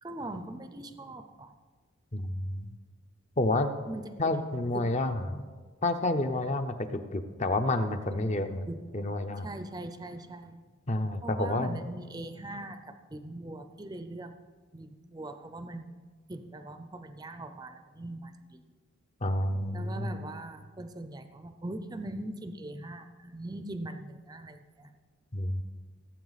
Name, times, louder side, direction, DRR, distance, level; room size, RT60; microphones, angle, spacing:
voice 1, 0.0-1.5 3.9-4.3 4.7-4.9 8.7-8.8 9.4-10.6 11.2-14.3 14.7-16.0 16.3-18.7 19.7-24.9, right 1 dB, 20° right, 9 dB, 0.5 m, -41 dB
voice 2, 2.1-2.7 3.4-3.7 4.2-5.5 5.8-8.6 8.9-9.5 10.9-11.8 19.2-20.1 25.3-25.6, left 2 dB, 30° left, 8 dB, 0.6 m, -29 dB
17.0 x 8.0 x 4.0 m, 1.5 s
head